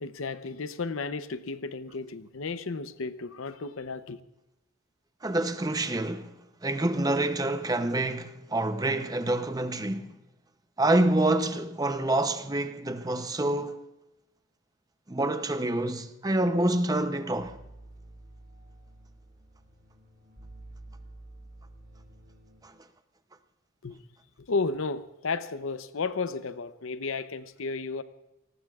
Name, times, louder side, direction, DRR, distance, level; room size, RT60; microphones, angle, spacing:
voice 1, 0.0-4.2 23.8-24.0 24.5-28.0, left 4 dB, 75° left, 0.7 m, -33 dB
voice 2, 5.2-6.3 6.6-10.1 10.8-13.8 15.1-17.6 22.6-22.7, right 1 dB, 20° right, 0.7 m, -27 dB
sound 1, 17.4-22.6, right 1 dB, 50° right, 6.6 m, -50 dB
29.5 x 19.0 x 2.4 m
head